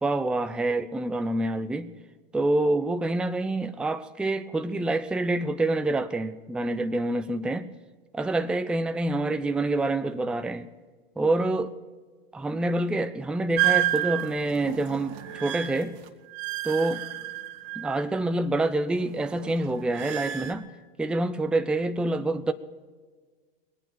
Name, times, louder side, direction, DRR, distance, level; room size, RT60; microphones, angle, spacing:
voice 1, 0.0-1.9 2.3-7.7 8.1-10.7 11.2-11.7 12.3-16.0 16.6-17.0 17.8-20.6 21.0-22.5, right 2 dB, 5° right, 0.5 m, -27 dB
sound 1, 13.6-18.3 18.6-20.5, right 14 dB, 45° right, 1.4 m, -30 dB
21.0 x 9.0 x 7.3 m
figure-of-eight pair, 90°, 29 cm